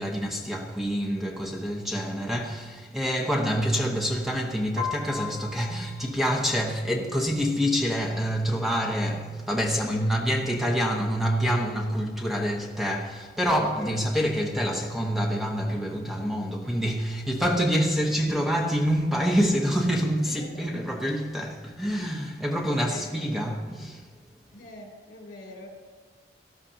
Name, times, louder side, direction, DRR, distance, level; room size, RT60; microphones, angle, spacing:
voice 1, 0.0-24.1, equal, ahead, 1.0 m, -27 dB
Piano, 4.8-6.8, left 6 dB, 45° right, 2.8 m, -37 dB
voice 2, 9.7-10.1 13.8-14.2 17.9-18.0 20.2-20.8 22.6-23.2 24.5-25.7, left 1 dB, 70° left, 3.2 m, -44 dB
18.0 x 12.5 x 2.8 m
head